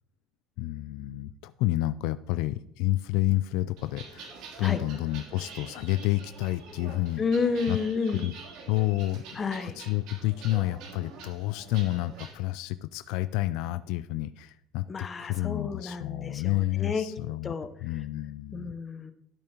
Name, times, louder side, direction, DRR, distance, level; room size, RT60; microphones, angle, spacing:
voice 1, 0.6-7.2 7.7-7.8 8.1-8.3 8.7-17.5 17.8-18.7, left 17 dB, 75° left, 14 dB, 0.3 m, -30 dB
sound 1, 3.8-12.3, right 4 dB, 70° right, 3.0 m, -46 dB
voice 2, 7.2-8.2 9.4-9.7 14.9-17.0 17.4-17.7 18.5-19.1, left 5 dB, 25° left, 10 dB, 0.9 m, -30 dB
14.0 x 8.7 x 2.9 m, 0.75 s
supercardioid pair, 120°, 0 cm